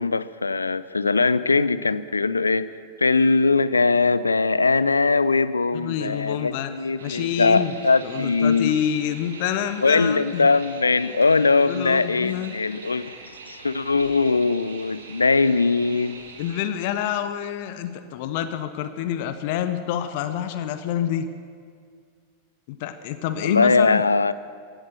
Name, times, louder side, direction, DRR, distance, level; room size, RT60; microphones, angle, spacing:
voice 1, 0.0-2.7 3.0-8.7 9.8-13.1 13.5-16.2 23.4-24.3, left 4 dB, 80° left, 16 dB, 0.5 m, -21 dB
voice 2, 5.7-6.7 7.0-7.7 8.0-10.5 11.7-12.5 16.4-21.3 22.7-24.0, left 10 dB, 50° left, 11 dB, 0.9 m, -27 dB
sound 1, 7.0-16.7, right 4 dB, 65° right, 1.9 m, -43 dB
16.0 x 11.0 x 7.1 m, 2.1 s
figure-of-eight pair, 90°, 0 cm